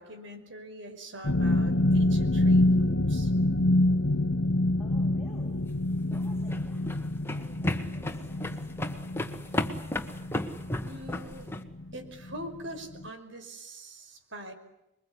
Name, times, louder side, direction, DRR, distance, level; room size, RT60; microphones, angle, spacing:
voice 1, 0.0-3.3 10.8-11.5 11.9-14.5, equal, 90° right, 6 dB, 5.5 m, -43 dB
sound 1, 1.2-11.9 12.2-12.6 13.0-13.1, left 1 dB, 75° left, 1.2 m, -26 dB
voice 2, 4.8-5.6 6.1-7.0 7.3-10.0, equal, 5° right, -1 dB, 6.9 m, -54 dB
sound 2, 6.0-11.6, left 1 dB, 15° left, 1.8 m, -33 dB
27.0 x 22.5 x 9.6 m, 0.89 s
head